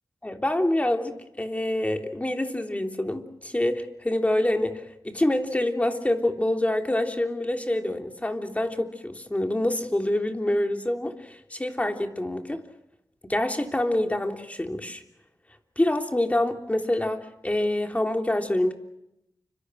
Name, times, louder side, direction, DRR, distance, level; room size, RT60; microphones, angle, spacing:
voice 1, 0.2-12.6 13.2-15.0 15.8-18.7, left 1 dB, 20° left, 5 dB, 3.3 m, -26 dB
30.0 x 26.0 x 6.4 m, 0.82 s
wide cardioid pair, 80°, 8 cm